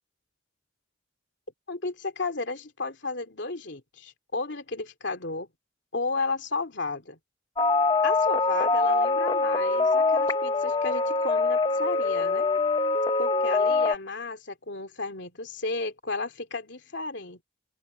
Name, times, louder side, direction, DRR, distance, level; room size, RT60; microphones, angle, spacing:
voice 1, 1.7-5.5 5.9-7.2 8.0-12.5 13.2-17.4, left 3 dB, 65° left, 2.7 m, -33 dB
sound 1, 7.6-14.0, left 3 dB, 20° left, 0.8 m, -24 dB
open air
head